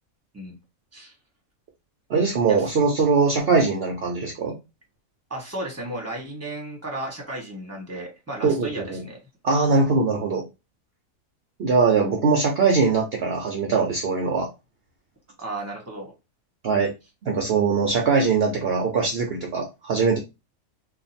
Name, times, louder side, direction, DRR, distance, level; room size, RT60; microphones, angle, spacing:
voice 1, 2.1-4.5 8.4-9.0 9.4-10.4 11.6-14.5 16.6-16.9 17.2-20.2, right 4 dB, 55° right, 1 dB, 0.8 m, -21 dB
voice 2, 5.3-9.2 15.4-16.1, right 1 dB, 10° right, -1 dB, 1.2 m, -34 dB
2.9 x 2.5 x 4.0 m, 0.26 s
omnidirectional pair, 1.4 m